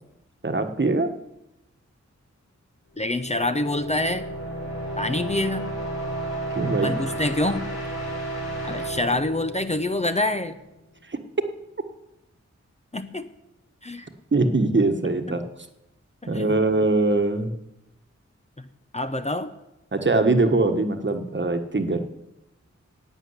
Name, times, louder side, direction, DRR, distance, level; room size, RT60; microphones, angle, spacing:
voice 1, 0.4-1.1 6.5-7.0 11.1-11.2 14.3-15.4 16.3-17.5 19.9-22.0, right 2 dB, 40° right, 6 dB, 1.3 m, -22 dB
sound 1, 3.0-10.7, right 1 dB, 60° left, 4.7 m, -33 dB
voice 2, 3.0-4.3 5.0-5.8 6.8-7.7 8.6-10.6 12.9-13.3 13.8-14.1 15.3-15.4 16.2-16.6 18.6-18.7 18.9-19.5, left 1 dB, 25° left, 9 dB, 0.7 m, -26 dB
11.5 x 9.0 x 8.1 m, 0.90 s
wide cardioid pair, 60°, 29 cm